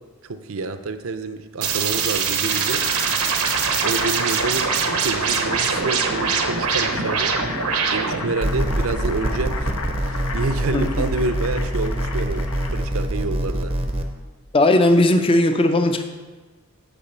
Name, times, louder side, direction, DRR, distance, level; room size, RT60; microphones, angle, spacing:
voice 1, 0.2-2.8 3.8-7.3 7.9-9.7 10.0-13.7, right 3 dB, 70° right, 10 dB, 0.6 m, -28 dB
sound 1, 1.6-8.3, right 6 dB, 90° right, 0.9 m, -23 dB
Boiling, 2.3-13.0, left 4 dB, 80° left, 0.8 m, -33 dB
sound 2, 8.4-14.0, right 1 dB, 25° right, 0.6 m, -24 dB
voice 2, 10.7-11.1 14.5-16.0, left 1 dB, 25° left, 7 dB, 0.5 m, -17 dB
7.0 x 5.1 x 6.7 m, 1.3 s
head